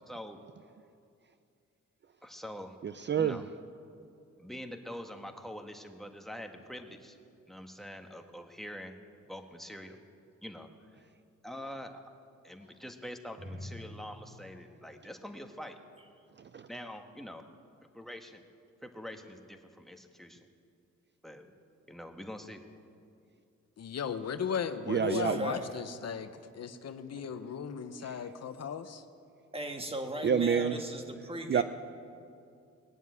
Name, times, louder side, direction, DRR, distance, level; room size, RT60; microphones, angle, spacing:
voice 1, 0.1-0.4 2.2-2.8 3.1-3.4 4.4-7.2 7.5-9.0 9.2-10.0 10.4-11.1 11.4-12.1 12.4-15.8 16.7-17.4 17.9-18.4 18.8-20.5 21.2-21.5 21.9-22.6, equal, ahead, 4 dB, 1.5 m, -45 dB
voice 2, 2.8-3.4 16.4-16.7 24.9-25.5 28.0-28.2 30.2-30.8 31.5-31.6, right 7 dB, 40° right, 11 dB, 0.5 m, -28 dB
voice 3, 23.8-29.0, left 7 dB, 60° left, 10 dB, 0.9 m, -36 dB
voice 4, 25.0-25.6 29.5-31.6, right 1 dB, 20° right, 4 dB, 1.8 m, -38 dB
19.5 x 7.3 x 9.6 m, 2.4 s
cardioid pair, 70°, 29 cm